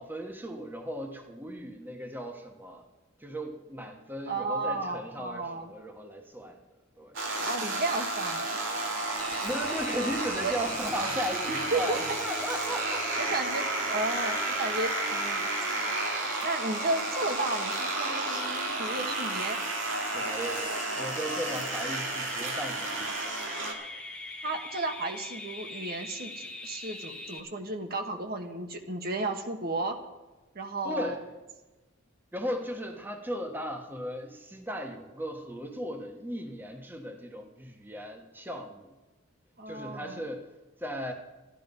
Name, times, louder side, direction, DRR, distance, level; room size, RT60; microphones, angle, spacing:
voice 1, 0.0-2.8 3.2-6.6 7.0-7.1 9.4-13.1 20.1-23.4 30.8-31.2 32.3-38.9 39.7-40.5 40.8-41.1, equal, 10° right, 3 dB, 1.1 m, -36 dB
voice 2, 4.3-5.7 7.4-8.6 10.4-10.6 11.5-12.2 13.2-13.6 13.9-15.5 16.4-19.6 24.4-30.0 30.5-31.3 39.6-40.2, right 2 dB, 50° right, 4 dB, 1.3 m, -33 dB
sound 1, 7.1-23.7, right 2 dB, 70° right, 2.5 m, -32 dB
sound 2, 9.2-27.4, left 2 dB, 5° left, 1.4 m, -42 dB
13.5 x 11.0 x 5.4 m, 1.1 s
head